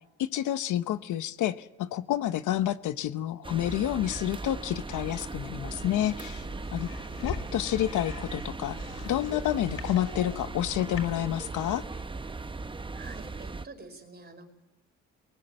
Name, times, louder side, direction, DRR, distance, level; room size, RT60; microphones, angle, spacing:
voice 1, 0.2-6.5 6.7-6.9 7.2-8.8 9.0-11.8, left 12 dB, 85° left, 11 dB, 1.0 m, -29 dB
sound 1, 3.4-13.7, right 3 dB, 15° right, 0.8 m, -38 dB
sound 2, 5.8-11.0, left 5 dB, 50° left, 5.8 m, -43 dB
voice 2, 12.9-14.5, right 3 dB, 35° right, 5 dB, 4.9 m, -47 dB
21.5 x 19.5 x 9.0 m, 0.96 s
cardioid pair, 90°, 30 cm